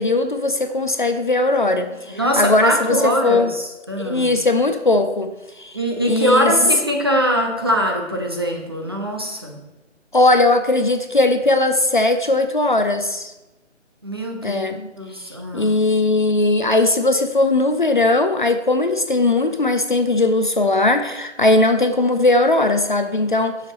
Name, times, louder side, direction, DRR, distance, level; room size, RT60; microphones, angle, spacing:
voice 1, 0.0-3.5 4.0-5.8 6.1-6.5 10.1-13.3 14.4-14.9 15.5-23.6, left 2 dB, 45° left, 8 dB, 0.5 m, -18 dB
voice 2, 2.1-4.4 5.7-9.6 14.0-14.6 15.0-15.7, equal, 20° right, 1 dB, 0.6 m, -22 dB
6.5 x 5.8 x 5.8 m, 1.0 s
figure-of-eight pair, 150°, 37 cm